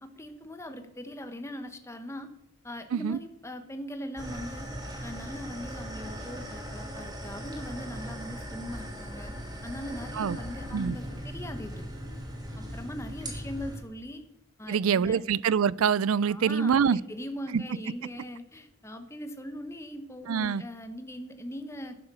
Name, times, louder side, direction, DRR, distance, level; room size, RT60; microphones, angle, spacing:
voice 1, 0.0-2.3 2.6-4.7 5.0-9.3 9.6-11.8 12.6-14.2 14.6-15.2 16.3-21.9, left 1 dB, 15° left, 1.2 m, -40 dB
sound 1, 4.2-13.8, equal, 20° right, 2.3 m, -39 dB
voice 2, 14.7-17.0 17.5-17.6 20.3-20.6, right 7 dB, 90° right, 0.4 m, -25 dB
11.0 x 10.5 x 6.2 m
head